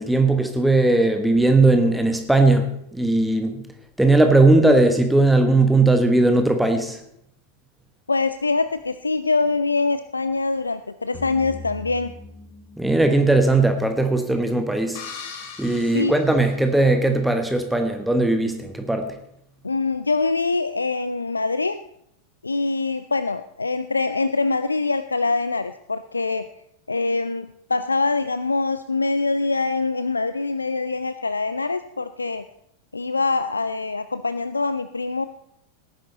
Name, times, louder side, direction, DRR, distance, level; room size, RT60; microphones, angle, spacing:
voice 1, 0.0-3.6 4.0-7.0 12.8-15.0 15.6-19.1, right 2 dB, 5° right, 5 dB, 1.2 m, -18 dB
voice 2, 8.1-12.1 15.9-16.2 19.6-21.8 22.4-26.5 26.9-32.4 32.9-35.3, left 3 dB, 80° left, 13 dB, 0.4 m, -24 dB
sound 1, 11.1-14.4, left 4 dB, 30° left, 2.1 m, -41 dB
sound 2, 14.9-17.2, left 6 dB, 50° left, 2.3 m, -40 dB
18.0 x 10.5 x 4.1 m, 0.78 s
figure-of-eight pair, 90°, 0 cm